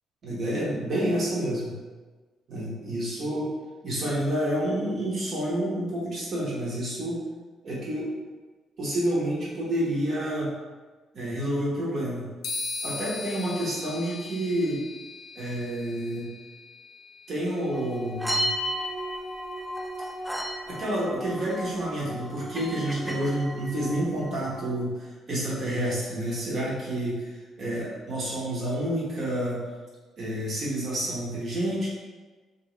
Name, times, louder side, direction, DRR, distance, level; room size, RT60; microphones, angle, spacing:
voice 1, 0.2-1.7 2.5-3.5 3.8-7.2 7.6-8.1 8.8-10.5 11.1-12.3 12.8-14.8 15.3-16.3 17.3-18.5 20.7-29.6 30.2-31.9, right 1 dB, 50° right, -6 dB, 1.2 m, -29 dB
sound 1, 12.4-20.1, left 4 dB, 80° left, 0.4 m, -40 dB
sound 2, 17.7-24.7, equal, 5° right, 0.3 m, -34 dB
3.0 x 2.7 x 3.1 m, 1.3 s
cardioid pair, 100°, 0 cm